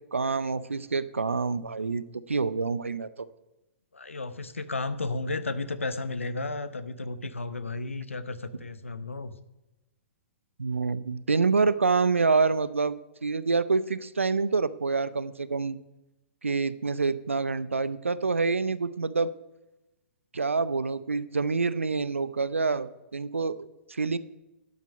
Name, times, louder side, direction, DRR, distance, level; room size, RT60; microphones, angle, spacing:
voice 1, 0.1-3.3 10.6-13.0 13.2-15.8 16.4-19.3 20.3-24.2, right 4 dB, 85° right, 16 dB, 0.6 m, -27 dB
voice 2, 3.9-9.4, left 3 dB, 85° left, 13 dB, 0.8 m, -33 dB
12.0 x 8.2 x 5.2 m, 0.99 s
figure-of-eight pair, 115°, 7 cm